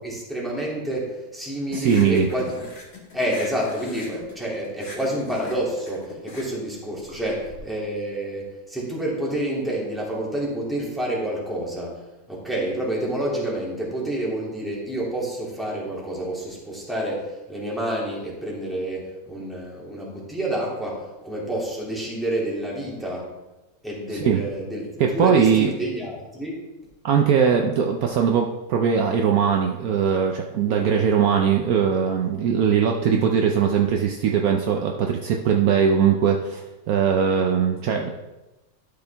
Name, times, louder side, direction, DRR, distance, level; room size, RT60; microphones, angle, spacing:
voice 1, 0.0-2.7 3.1-12.0 12.3-23.3 23.8-26.6, right 1 dB, ahead, -5 dB, 2.2 m, -28 dB
voice 2, 1.7-2.3 24.1-24.4 25.0-25.7 27.0-38.1, right 7 dB, 75° right, 3 dB, 0.8 m, -20 dB
sound 1, 1.8-7.6, left 2 dB, 50° left, 2.0 m, -41 dB
12.0 x 5.8 x 3.4 m, 1.0 s
omnidirectional pair, 2.2 m